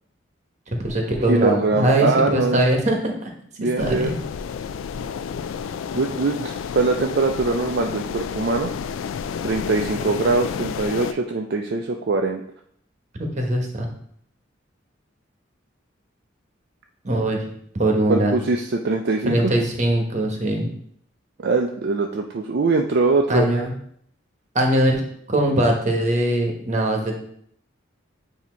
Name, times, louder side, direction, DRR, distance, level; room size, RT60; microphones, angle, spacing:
voice 1, 0.7-3.3 3.8-4.2 13.3-13.9 17.0-17.5 17.7-18.3 19.2-20.7 23.3-23.7 24.5-25.0 25.3-27.2, right 1 dB, 35° right, 1 dB, 1.2 m, -21 dB
voice 2, 1.3-2.7 3.6-4.1 5.9-8.7 9.4-12.4 18.1-19.5 21.4-23.5, right 3 dB, 55° right, 3 dB, 0.4 m, -22 dB
sound 1, 3.8-11.1, left 6 dB, 90° left, 0.3 m, -30 dB
8.3 x 2.8 x 4.4 m, 0.66 s
head